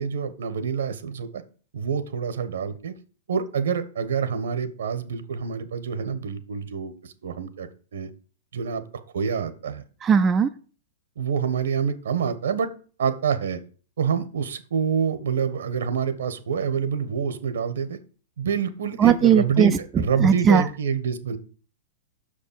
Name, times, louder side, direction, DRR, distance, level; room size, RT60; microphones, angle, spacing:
voice 1, 0.0-1.4 1.7-2.9 3.3-8.1 8.5-8.8 9.1-9.8 11.2-12.7 13.0-13.6 14.0-18.0 18.4-21.4, right 7 dB, 80° right, 11 dB, 1.3 m, -27 dB
voice 2, 10.0-10.5 19.0-19.7 20.2-20.6, right 7 dB, 15° right, 9 dB, 0.3 m, -17 dB
6.5 x 5.2 x 7.0 m, 0.40 s
supercardioid pair, 175°, 0 cm